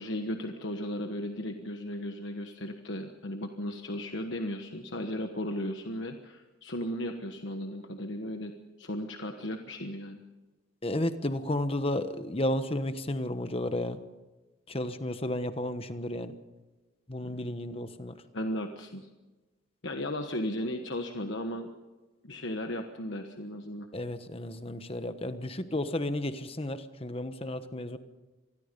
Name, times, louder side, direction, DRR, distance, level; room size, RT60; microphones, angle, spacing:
voice 1, 0.0-8.5 8.8-10.2 17.2-17.4 18.3-19.1 19.8-21.7 22.2-23.9, left 1 dB, 60° left, 5 dB, 1.3 m, -35 dB
voice 2, 10.8-14.0 14.7-16.3 17.1-18.2 23.9-28.0, left 1 dB, 30° left, 10 dB, 1.2 m, -32 dB
26.5 x 20.0 x 5.3 m, 1.2 s
head